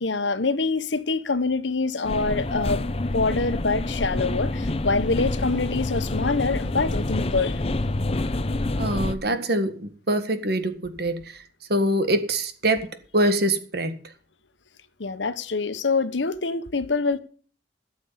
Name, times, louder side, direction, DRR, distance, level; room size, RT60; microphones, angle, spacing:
voice 1, 0.0-2.8 3.1-7.6 15.0-17.2, left 3 dB, 90° left, 1.1 m, -25 dB
sound 1, 2.0-9.1, left 2 dB, 35° left, 0.8 m, -27 dB
voice 2, 8.8-11.4 11.7-14.0, right 1 dB, 60° right, 1.9 m, -24 dB
13.5 x 7.1 x 7.3 m
head